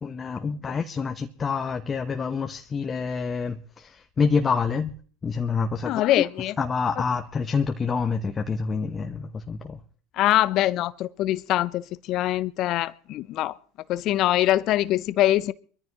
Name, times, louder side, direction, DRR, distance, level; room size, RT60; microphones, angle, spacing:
voice 1, 0.0-4.9 5.2-6.0 6.6-9.8, left 5 dB, 25° left, 1.0 m, -27 dB
voice 2, 5.9-6.5 10.2-13.5 13.9-15.5, left 14 dB, 50° left, 0.6 m, -23 dB
23.5 x 14.0 x 3.0 m
hypercardioid pair, 80°, 0 cm